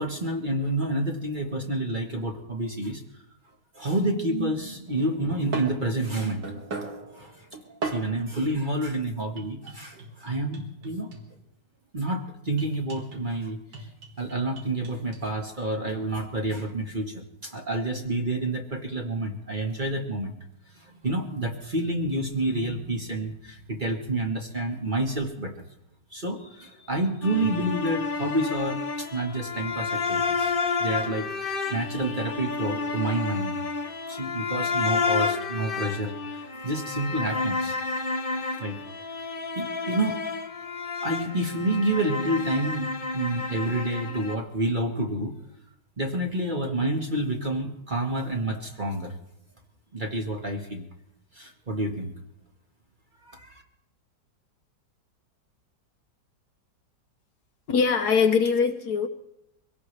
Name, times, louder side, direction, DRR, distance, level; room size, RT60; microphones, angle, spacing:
voice 1, 0.0-3.0 3.7-6.6 7.1-11.1 11.9-13.9 14.2-20.3 20.7-25.6 26.1-30.5 30.8-33.6 34.1-37.7 38.6-38.8 39.5-40.2 41.0-45.4 46.0-49.1 49.9-50.9 51.3-52.1 53.2-53.6, right 1 dB, 30° right, 2 dB, 1.5 m, -29 dB
sound 1, 4.9-8.3 9.4-11.5 12.6-13.3 13.7-15.3 15.9-16.1, right 3 dB, 70° right, 2.5 m, -38 dB
sound 2, 27.2-44.4, left 4 dB, 35° left, 1.1 m, -30 dB
voice 2, 57.7-59.1, left 5 dB, 65° left, 7 dB, 1.4 m, -22 dB
23.5 x 17.0 x 3.3 m, 0.80 s
omnidirectional pair, 1.9 m